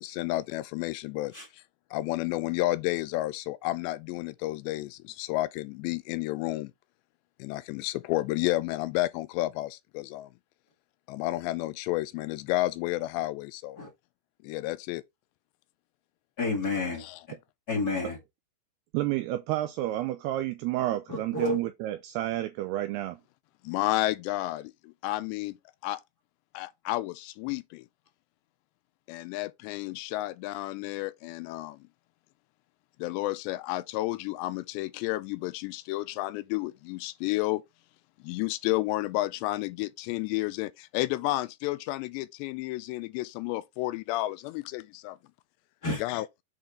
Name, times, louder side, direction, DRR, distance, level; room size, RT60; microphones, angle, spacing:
voice 1, 0.0-1.6 1.9-6.7 7.4-10.3 11.1-13.8 14.4-15.0 17.0-17.2 23.6-25.6 25.8-26.0 26.5-27.9 29.1-31.8 33.0-37.6 38.2-45.2 46.0-46.3, left 18 dB, 85° left, 2.7 m, -31 dB
voice 2, 16.4-17.0 17.7-18.2 21.1-21.6 45.8-46.0, left 3 dB, 40° left, 1.4 m, -29 dB
voice 3, 18.9-23.2, right 15 dB, 85° right, 2.3 m, -30 dB
7.8 x 4.3 x 3.7 m
omnidirectional pair, 5.1 m